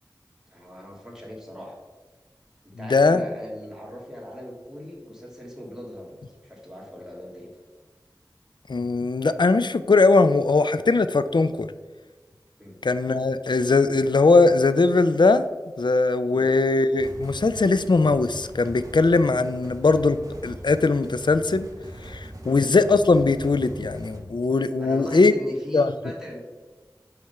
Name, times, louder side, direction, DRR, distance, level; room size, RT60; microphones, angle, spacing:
voice 1, 0.5-1.8 2.6-6.2 6.4-7.5 12.6-12.8 22.4-22.6 24.8-26.4, equal, 5° right, -3 dB, 1.9 m, -39 dB
voice 2, 2.8-3.2 8.7-11.7 12.8-15.4 15.8-20.2 20.4-21.7 22.0-25.3 25.7-25.9, left 3 dB, 70° left, 12 dB, 0.4 m, -20 dB
sound 1, 17.0-24.2, right 1 dB, 45° right, 1.3 m, -41 dB
7.6 x 3.6 x 5.5 m, 1.3 s
wide cardioid pair, 40°, 8 cm